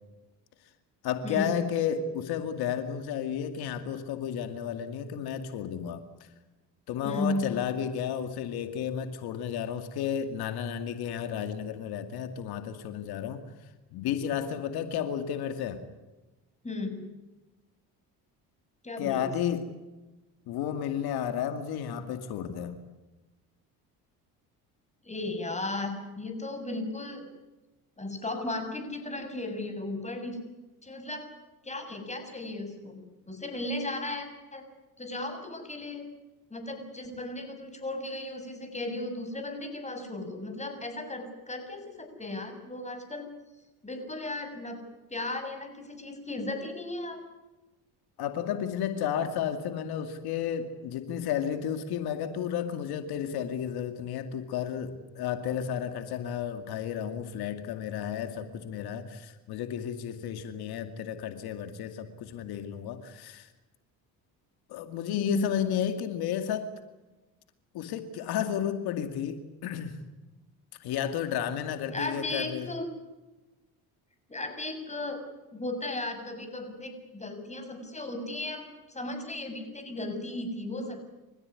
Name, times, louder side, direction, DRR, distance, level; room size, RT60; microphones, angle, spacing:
voice 1, 1.0-6.0 6.9-13.4 13.9-15.8 19.0-19.7 20.5-22.8 48.2-63.5 64.7-66.7 67.7-70.0 70.8-72.7, left 9 dB, 75° left, 2.4 m, -32 dB
voice 2, 7.0-7.7 16.6-17.1 18.8-19.3 25.0-27.3 28.0-30.4 30.8-31.3 31.6-34.6 35.0-36.0 36.5-43.3 43.8-44.8 45.1-47.2 65.1-65.6 71.9-72.9 74.3-75.2 75.5-81.1, left 2 dB, 15° left, 7.0 m, -35 dB
30.0 x 15.0 x 9.8 m
supercardioid pair, 90°, 38 cm